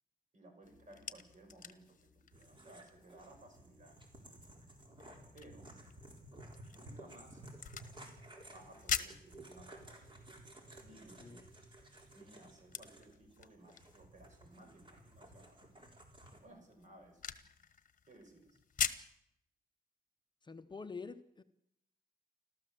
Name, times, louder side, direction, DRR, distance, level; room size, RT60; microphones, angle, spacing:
voice 1, 0.3-4.0 5.3-5.7 6.7-7.4 8.5-10.1 10.8-11.5 12.1-15.6 16.3-17.2 18.0-18.6, right 1 dB, 50° right, 6.4 m, -59 dB
sound 1, 0.6-19.2, left 7 dB, 55° left, 1.2 m, -46 dB
sound 2, 2.3-16.4, right 1 dB, 30° right, 4.0 m, -55 dB
voice 2, 20.4-21.4, left 4 dB, 30° left, 0.8 m, -47 dB
29.5 x 13.5 x 7.6 m
wide cardioid pair, 175°, 16 cm